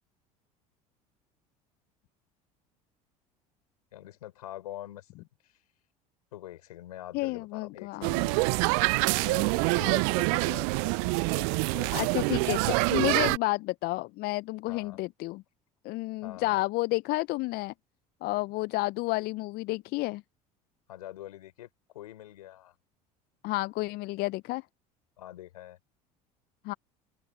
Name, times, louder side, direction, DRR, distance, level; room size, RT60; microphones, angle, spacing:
voice 1, 3.9-5.6 6.3-8.7 9.1-12.0 14.7-15.0 16.2-16.6 20.9-21.7 21.9-22.8 25.2-25.8, left 13 dB, 75° left, 4.1 m, -45 dB
voice 2, 7.1-8.4 11.9-15.4 15.8-17.7 18.2-20.2 23.4-24.6 26.6-26.7, left 21 dB, 55° left, 0.7 m, -31 dB
sound 1, 8.0-13.4, right 36 dB, 60° right, 0.5 m, -26 dB
open air
hypercardioid pair, 70°, 19 cm